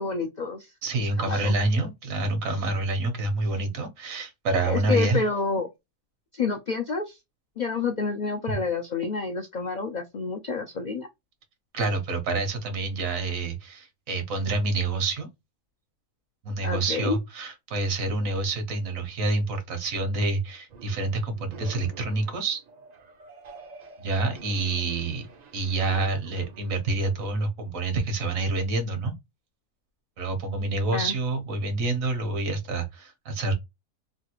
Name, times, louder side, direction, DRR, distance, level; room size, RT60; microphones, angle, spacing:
voice 1, 0.0-0.7 1.2-1.5 4.6-5.7 6.3-7.2 7.6-11.1 16.6-17.2 30.9-31.1, left 4 dB, 70° left, 0.4 m, -29 dB
voice 2, 0.8-5.2 11.7-15.3 16.4-22.6 24.0-25.3 25.5-29.1 30.2-33.5, right 2 dB, 80° right, 1.4 m, -27 dB
sound 1, 20.7-27.3, right 4 dB, 55° right, 0.4 m, -48 dB
3.3 x 2.3 x 2.9 m
omnidirectional pair, 1.4 m